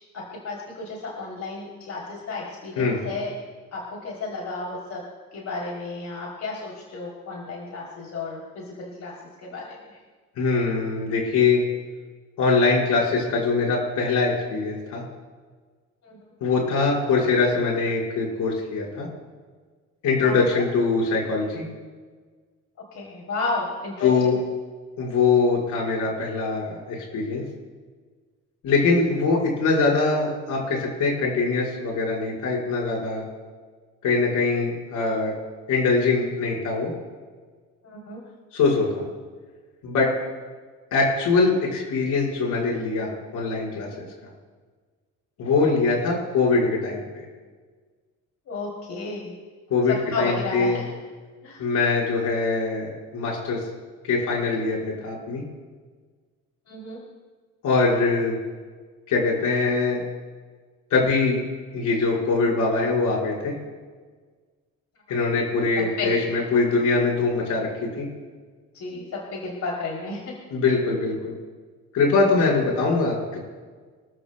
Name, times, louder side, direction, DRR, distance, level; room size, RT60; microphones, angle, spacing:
voice 1, 0.1-3.3 3.7-5.0 5.3-9.1 9.4-10.0 16.0-16.2 20.2-20.6 22.9-24.4 37.8-38.2 48.5-49.3 49.9-50.9 51.4-51.7 56.7-57.0 65.8-66.1 68.7-70.3, left 3 dB, 65° left, -3 dB, 3.3 m, -32 dB
voice 2, 10.4-11.6 12.4-15.0 16.4-19.1 20.0-21.6 24.0-24.4 25.0-27.4 28.6-33.2 34.0-35.3 35.7-36.9 38.5-39.0 39.8-40.1 40.9-44.0 45.4-47.0 49.7-50.8 51.6-53.6 54.0-55.4 57.6-58.4 59.1-60.0 60.9-61.4 61.7-63.5 65.1-68.1 70.5-71.3 71.9-73.4, left 4 dB, 85° left, -3 dB, 5.1 m, -22 dB
26.0 x 13.5 x 2.3 m, 1.5 s
cardioid pair, 90°, 30 cm